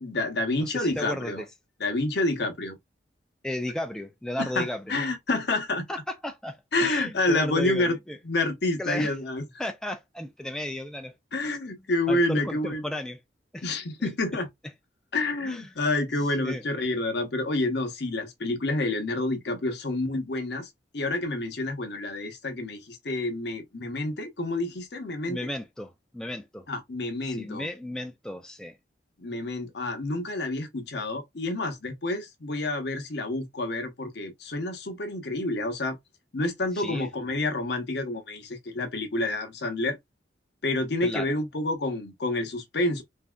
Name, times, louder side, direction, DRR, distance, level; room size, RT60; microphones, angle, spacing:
voice 1, 0.0-1.4 1.8-2.8 4.4-5.9 6.7-8.0 8.2-9.4 11.3-12.8 13.6-14.5 15.1-25.4 26.7-27.7 29.2-36.0 36.3-40.0 40.6-43.0, left 2 dB, 65° left, 0.8 m, -28 dB
voice 2, 0.6-1.5 3.4-4.9 5.9-8.2 8.8-9.1 9.6-11.1 11.5-11.8 12.1-13.2 13.5-13.7 15.4-15.7 16.2-16.6 25.3-26.6 27.2-28.8 36.7-37.1 41.0-41.3, left 1 dB, 5° left, 0.4 m, -34 dB
3.5 x 2.6 x 2.3 m
head